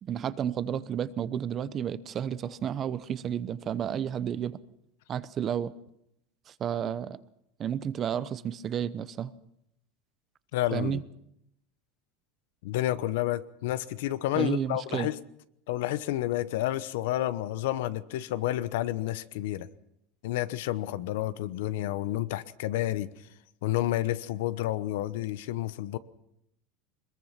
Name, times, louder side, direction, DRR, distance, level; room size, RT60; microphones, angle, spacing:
voice 1, 0.0-4.6 5.1-5.7 6.5-7.2 7.6-9.3 10.7-11.0 14.4-15.1, right 9 dB, 30° right, 16 dB, 0.8 m, -31 dB
voice 2, 10.5-11.0 12.6-15.2 15.7-19.7 20.2-23.1 23.6-26.0, left 14 dB, 80° left, 16 dB, 1.0 m, -30 dB
22.5 x 21.5 x 5.9 m, 0.79 s
supercardioid pair, 145°, 0 cm